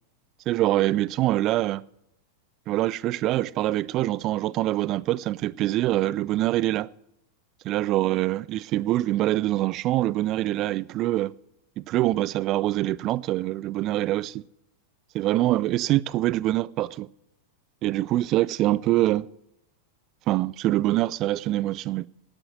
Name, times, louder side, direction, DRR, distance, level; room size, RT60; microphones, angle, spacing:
voice 1, 0.5-1.8 2.7-6.9 7.6-11.3 11.9-14.4 15.1-17.1 17.8-19.3 20.3-22.1, right 15 dB, 35° right, 0.4 m, -24 dB
9.9 x 9.8 x 9.4 m
figure-of-eight pair, 90°, 0 cm